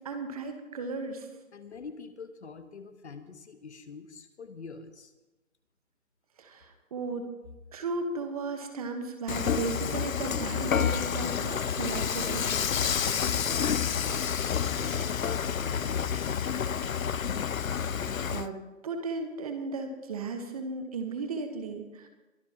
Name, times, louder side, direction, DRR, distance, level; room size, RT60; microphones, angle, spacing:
voice 1, 0.0-1.3 6.4-7.3 7.7-12.6 17.7-17.8 18.3-18.6 18.8-22.1, right 3 dB, 30° right, 6 dB, 1.3 m, -35 dB
voice 2, 1.5-5.1 13.0-16.6, left 5 dB, 55° left, 10 dB, 1.3 m, -44 dB
Dishes pots and pans / Frying (food), 9.3-18.5, left 7 dB, 80° left, 0.7 m, -29 dB
23.0 x 13.0 x 2.9 m, 1.1 s
figure-of-eight pair, 155°, 40 cm